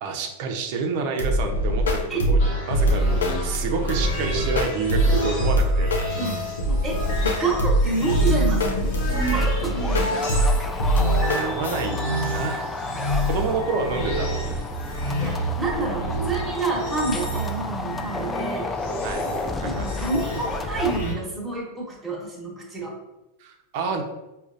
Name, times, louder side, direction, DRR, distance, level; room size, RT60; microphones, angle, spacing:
voice 1, 0.0-5.9 11.4-12.6 13.2-14.3 19.0-20.1 23.4-24.0, right 4 dB, 55° right, 3 dB, 0.6 m, -29 dB
sound 1, 1.2-11.8, equal, 80° left, 0.5 m, -22 dB
sound 2, 2.4-21.1, right 1 dB, 60° left, 1.0 m, -30 dB
voice 2, 6.2-10.2 15.2-18.7 19.6-22.9, right 3 dB, 10° right, -5 dB, 1.2 m, -29 dB
sound 3, 7.0-21.0, left 3 dB, 15° left, 0.3 m, -33 dB
5.0 x 2.4 x 2.5 m, 0.98 s
hypercardioid pair, 95°, 0 cm